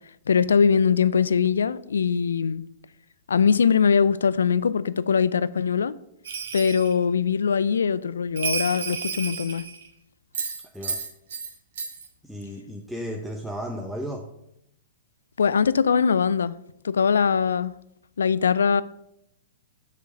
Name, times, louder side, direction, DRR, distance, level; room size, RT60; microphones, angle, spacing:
voice 1, 0.3-2.6 3.3-5.9 6.5-9.6 15.4-16.6 16.8-17.7 18.2-18.8, left 6 dB, 80° left, 0.3 m, -21 dB
Bell, 6.2-6.9 8.4-9.9 10.3-11.5 11.8-12.1, right 5 dB, 70° right, 1.4 m, -31 dB
voice 2, 12.2-14.3, equal, ahead, 0.7 m, -34 dB
6.6 x 5.0 x 5.3 m
hypercardioid pair, 115°, 0 cm